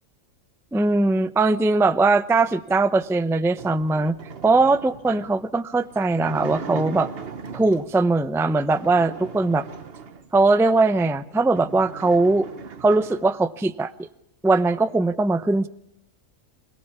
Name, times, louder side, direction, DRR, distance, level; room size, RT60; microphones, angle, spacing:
voice 1, 0.7-4.2 4.4-7.1 7.5-9.7 10.3-12.5 12.8-14.1 14.4-15.7, right 3 dB, 5° right, 14 dB, 0.4 m, -20 dB
sound 1, 2.9-8.0 8.6-10.7 11.1-11.2 11.4-13.3, right 5 dB, 45° right, 1.3 m, -39 dB
26.0 x 18.0 x 7.0 m, 0.83 s
omnidirectional pair, 1.4 m